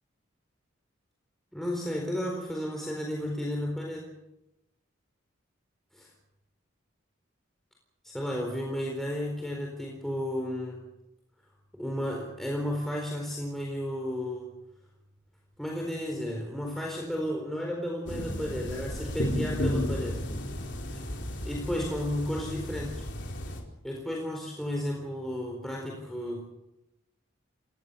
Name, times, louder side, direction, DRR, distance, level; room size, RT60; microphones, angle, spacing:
voice 1, 1.5-4.1 5.9-6.1 8.0-10.8 11.7-14.5 15.6-20.3 20.9-21.0 21.4-23.0 23.8-26.5, equal, ahead, -1 dB, 4.2 m, -33 dB
sound 1, 18.1-23.6, equal, 60° left, 4.2 m, -33 dB
28.5 x 18.0 x 6.9 m, 0.90 s
head